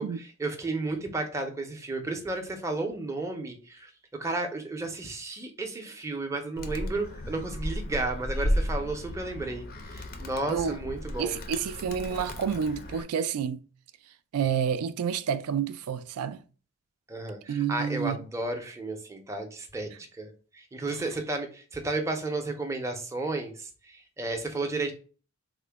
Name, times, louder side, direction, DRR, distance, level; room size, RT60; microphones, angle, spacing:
voice 1, 0.0-11.4 17.1-24.9, right 2 dB, 15° right, 0.5 m, -33 dB
Animal, 6.6-13.0, equal, 45° left, 0.4 m, -34 dB
voice 2, 10.5-10.8 11.2-13.6 14.3-16.4 17.5-18.2, right 7 dB, 85° right, 0.3 m, -29 dB
3.7 x 2.1 x 3.3 m
head